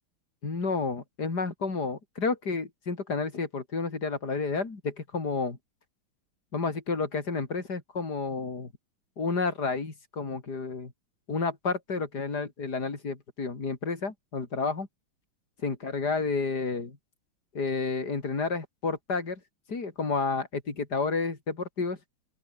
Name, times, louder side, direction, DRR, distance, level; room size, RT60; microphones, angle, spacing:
voice 1, 0.4-5.6 6.5-8.7 9.2-10.9 11.3-14.9 15.6-17.0 17.5-19.4 19.7-22.0, left 4 dB, 50° left, 4.4 m, -30 dB
open air
omnidirectional pair, 2.3 m